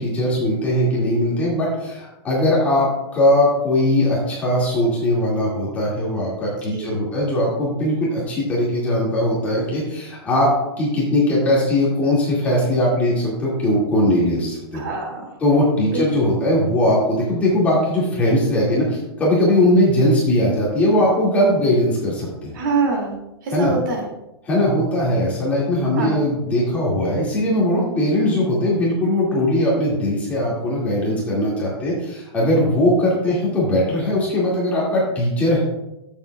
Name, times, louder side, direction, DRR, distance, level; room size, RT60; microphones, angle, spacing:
voice 1, 0.0-10.5 10.8-14.8 15.4-22.5 23.5-23.7 24.4-35.6, left 1 dB, 10° left, -6 dB, 2.1 m, -20 dB
voice 2, 6.7-7.0 14.7-15.2 15.9-16.3 22.5-23.2 23.4-24.1 26.0-26.2, right 3 dB, 45° right, 1 dB, 2.3 m, -24 dB
14.0 x 7.2 x 2.3 m, 0.92 s
hypercardioid pair, 175°, 14 cm